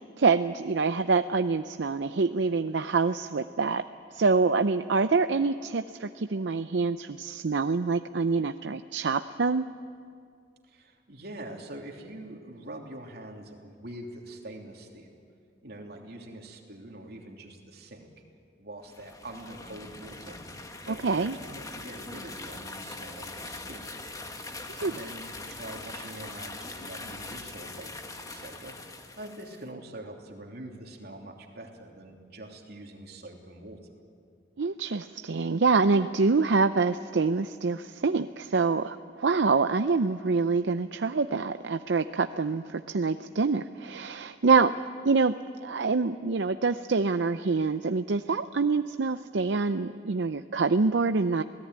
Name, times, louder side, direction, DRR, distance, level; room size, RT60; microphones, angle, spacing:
voice 1, 0.2-3.8 4.1-9.6 20.9-21.4 24.7-25.0 34.6-44.7 45.0-45.3 45.6-51.4, right 4 dB, 85° right, 10 dB, 0.6 m, -26 dB
sound 1, 4.4-7.1, left 2 dB, 25° right, 6.0 m, -54 dB
voice 2, 10.7-15.1 15.6-18.1 18.6-20.4 20.9-23.9 24.8-27.9 28.2-28.8 29.2-33.8, right 1 dB, 60° right, 1 dB, 3.2 m, -44 dB
sound 2, 18.8-29.6, left 2 dB, 20° left, 1.6 m, -42 dB
27.5 x 18.0 x 9.6 m, 2.3 s
head